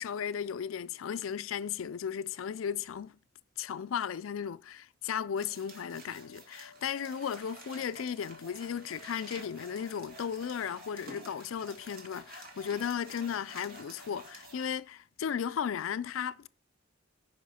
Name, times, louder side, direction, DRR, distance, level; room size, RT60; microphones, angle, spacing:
voice 1, 0.0-3.2 3.6-16.5, left 8 dB, 85° left, 0.4 m, -35 dB
sound 1, 5.4-14.7, right 1 dB, 50° right, 2.3 m, -50 dB
10.0 x 5.6 x 4.2 m
head